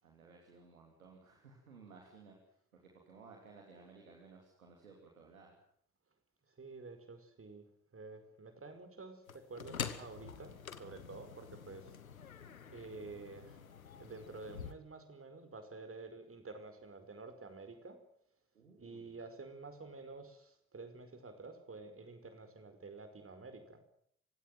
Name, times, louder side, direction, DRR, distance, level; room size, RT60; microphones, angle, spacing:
voice 1, 0.0-2.3 2.7-5.6 18.5-19.2, right 4 dB, 80° right, 0 dB, 3.0 m, -58 dB
voice 2, 6.6-7.6 7.9-12.0 12.7-13.6 13.9-18.0 18.8-23.8, right 3 dB, 30° right, 8 dB, 5.1 m, -50 dB
sound 1, 9.3-14.7, left 7 dB, 85° left, 1.1 m, -46 dB
28.0 x 16.5 x 7.7 m, 0.68 s
figure-of-eight pair, 40°, 41 cm